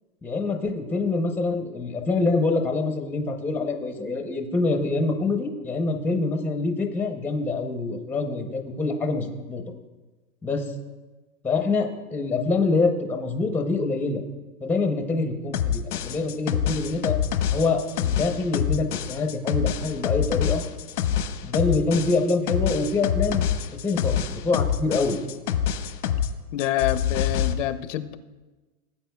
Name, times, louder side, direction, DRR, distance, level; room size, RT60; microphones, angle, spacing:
voice 1, 0.2-9.6 10.4-10.7 11.4-14.2 14.6-17.1 17.5-20.6 21.4-23.4 23.8-25.2, left 3 dB, 5° left, 4 dB, 0.6 m, -25 dB
sound 1, 15.5-26.3 26.6-27.5, left 9 dB, 85° left, 1.1 m, -26 dB
voice 2, 26.5-28.2, left 13 dB, 55° left, 11 dB, 0.6 m, -27 dB
17.5 x 8.8 x 2.2 m, 1.2 s
hypercardioid pair, 135°, 44 cm